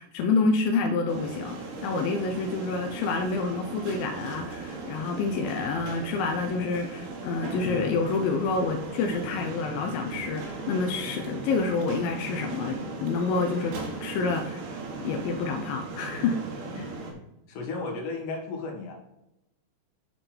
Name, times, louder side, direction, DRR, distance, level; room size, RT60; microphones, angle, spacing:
voice 1, 0.0-14.6 15.0-16.4 16.8-16.9, left 4 dB, 80° left, 3 dB, 2.1 m, -28 dB
sound 1, 1.1-17.1, right 3 dB, 70° right, 3.5 m, -37 dB
voice 2, 17.5-18.9, left 3 dB, 55° left, 0 dB, 2.8 m, -34 dB
7.9 x 6.7 x 4.3 m, 0.89 s
omnidirectional pair, 4.9 m